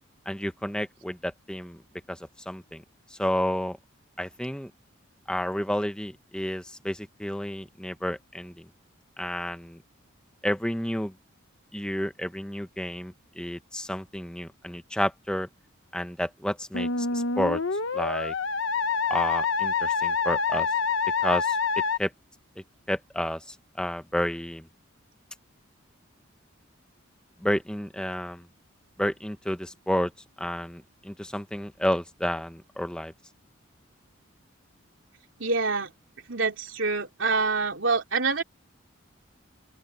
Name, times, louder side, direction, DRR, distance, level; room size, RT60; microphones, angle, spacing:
voice 1, 0.3-1.8 2.1-2.2 2.5-2.8 3.1-3.8 4.2-4.7 5.3-8.7 9.2-9.8 10.4-11.1 11.7-15.5 15.9-17.6 17.9-18.3 19.1-20.7 21.2-21.6 22.0-22.1 22.9-24.7 27.4-28.4 29.0-30.1 30.4-33.1, equal, 5° left, 0.9 m, -30 dB
Musical instrument, 16.7-22.0, left 5 dB, 65° left, 1.1 m, -26 dB
voice 2, 35.4-35.9 36.3-38.4, right 4 dB, 65° right, 3.3 m, -26 dB
open air
head